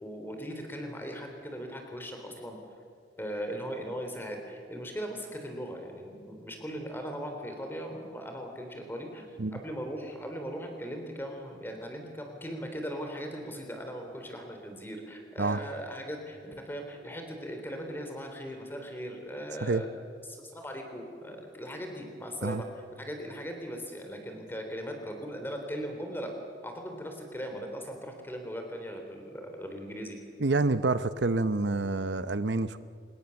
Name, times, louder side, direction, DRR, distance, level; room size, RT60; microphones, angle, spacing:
voice 1, 0.0-2.6 3.2-9.3 9.5-19.9 20.5-26.3 26.6-30.2, equal, 10° left, 4 dB, 3.5 m, -39 dB
voice 2, 30.4-32.8, right 3 dB, 80° right, 13 dB, 0.8 m, -27 dB
25.0 x 21.0 x 7.1 m, 2.3 s
head